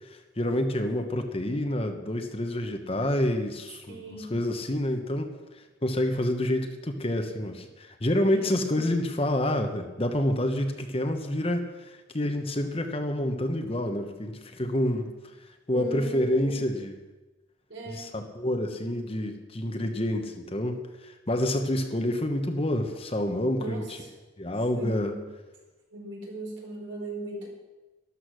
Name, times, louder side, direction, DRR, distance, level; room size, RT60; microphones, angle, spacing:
voice 1, 0.0-5.3 5.8-15.1 15.7-16.9 17.9-24.0 24.4-25.1, left 1 dB, 30° left, 5 dB, 1.1 m, -28 dB
voice 2, 3.9-4.3 8.3-8.6 15.7-16.6 17.7-18.1 23.5-24.1 24.7-25.2 25.9-27.5, right 2 dB, 65° right, -1 dB, 4.7 m, -38 dB
13.0 x 12.5 x 6.3 m, 1.1 s
head